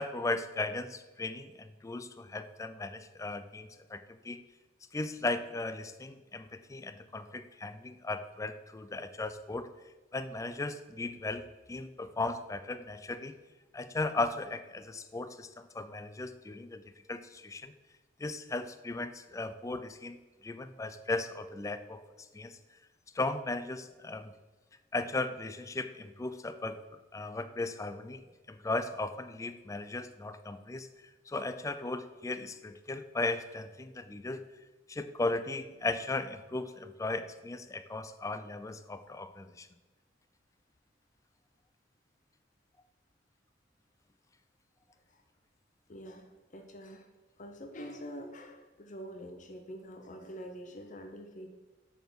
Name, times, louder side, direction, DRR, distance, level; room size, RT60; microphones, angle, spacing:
voice 1, 0.0-4.4 4.9-9.7 10.1-13.3 13.7-16.8 17.1-17.7 18.2-22.0 22.3-22.6 23.1-24.3 24.9-26.8 27.1-28.2 28.5-30.9 31.3-34.4 34.9-39.7, left 2 dB, 15° left, 11 dB, 0.3 m, -36 dB
voice 2, 45.9-47.1 47.4-51.5, equal, 40° left, 4 dB, 0.7 m, -46 dB
6.6 x 4.3 x 6.1 m, 1.2 s
head